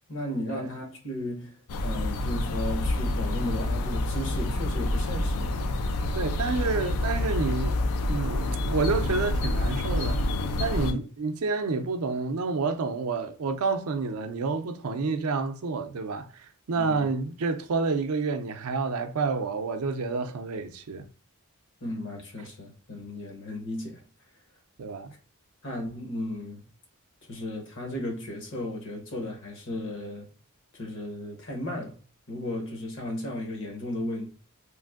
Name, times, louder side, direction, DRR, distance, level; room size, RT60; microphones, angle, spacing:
voice 1, 0.1-1.6 1.8-5.6 10.9-11.0 16.8-17.1 21.8-24.0 25.6-26.6 27.3-30.3 30.7-32.0 32.3-34.3, left 1 dB, 55° left, 0.9 m, -35 dB
sound 1, 1.7-10.9, left 2 dB, 85° left, 0.4 m, -28 dB
voice 2, 6.1-7.8 8.1-10.2 10.6-16.3 16.7-21.1 24.8-25.1, right 4 dB, 75° right, 0.4 m, -29 dB
3.1 x 2.5 x 2.4 m
head